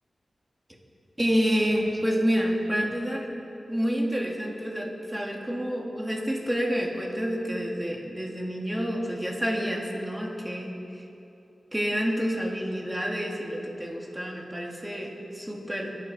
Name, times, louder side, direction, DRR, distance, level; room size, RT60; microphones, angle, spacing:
voice 1, 1.2-3.3 3.7-10.8 11.7-16.0, equal, 15° right, 0 dB, 2.1 m, -28 dB
23.5 x 11.0 x 4.2 m, 2.8 s
wide cardioid pair, 90°, 0 cm